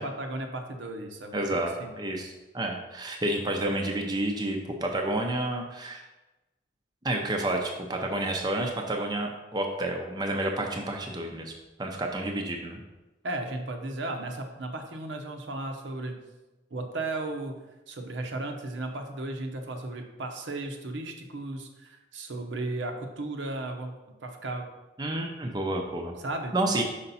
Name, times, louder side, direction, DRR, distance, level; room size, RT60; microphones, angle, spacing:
voice 1, 0.0-1.9 13.2-16.1 16.7-24.6 26.2-26.5, right 2 dB, 75° right, 4 dB, 0.8 m, -35 dB
voice 2, 1.3-1.7 2.0-6.0 7.0-11.5 11.8-12.8 25.0-26.1 26.5-26.8, right 1 dB, 20° right, 1 dB, 0.6 m, -30 dB
5.5 x 5.0 x 4.1 m, 1.1 s
head